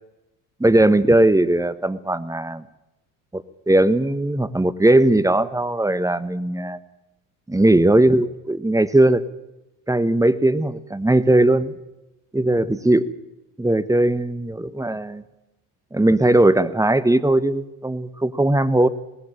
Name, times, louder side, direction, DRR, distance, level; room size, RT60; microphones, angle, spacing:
voice 1, 0.6-2.6 3.3-6.8 7.5-9.2 9.9-11.7 12.3-13.1 13.6-15.2 15.9-18.9, right 1 dB, 10° right, 14 dB, 1.1 m, -18 dB
19.0 x 15.0 x 9.0 m, 0.95 s
hypercardioid pair, 70°, 43 cm